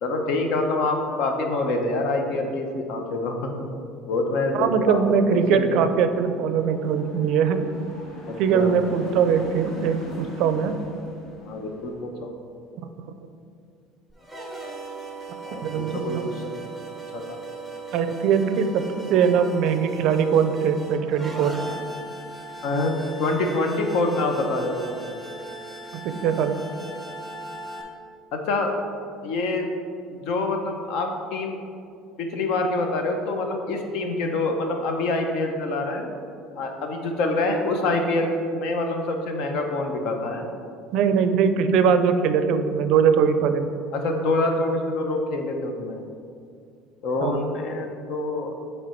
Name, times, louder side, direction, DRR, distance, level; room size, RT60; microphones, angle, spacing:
voice 1, 0.0-3.7 4.1-5.0 5.3-5.9 8.3-8.7 11.4-12.3 15.4-16.5 17.1-17.2 22.6-25.1 28.3-28.7 29.2-29.7 30.1-31.6 32.2-36.1 36.6-40.5 43.9-46.0 47.0-48.6, left 2 dB, 60° left, 4 dB, 0.8 m, -26 dB
voice 2, 4.5-7.7 8.4-10.8 12.8-13.1 15.6-16.2 17.9-21.7 25.9-26.6 40.9-43.7 47.2-47.4, right 7 dB, 60° right, 9 dB, 0.4 m, -21 dB
sound 1, 4.7-12.0, equal, 40° left, 1.4 m, -42 dB
sound 2, 14.1-27.8, right 2 dB, 5° left, 0.8 m, -38 dB
7.6 x 3.3 x 4.5 m, 2.4 s
cardioid pair, 140°, 0 cm